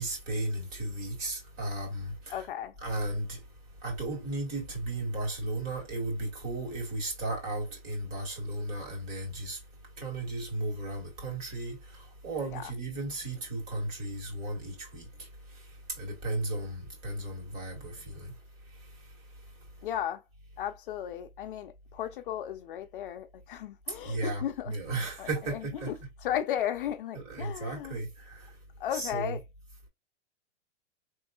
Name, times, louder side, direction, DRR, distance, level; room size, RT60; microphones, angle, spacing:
voice 1, 0.0-2.5 2.8-3.4 3.8-9.6 10.0-18.3 23.9-25.9 27.1-28.5 28.9-29.4, right 2 dB, 35° right, 1.9 m, -35 dB
voice 2, 2.3-2.7 12.5-12.7 19.8-20.2 20.6-24.7 25.0-26.0 26.2-28.0 28.8-29.4, left 10 dB, 50° left, 0.5 m, -35 dB
4.5 x 3.0 x 2.5 m
supercardioid pair, 165°, 36 cm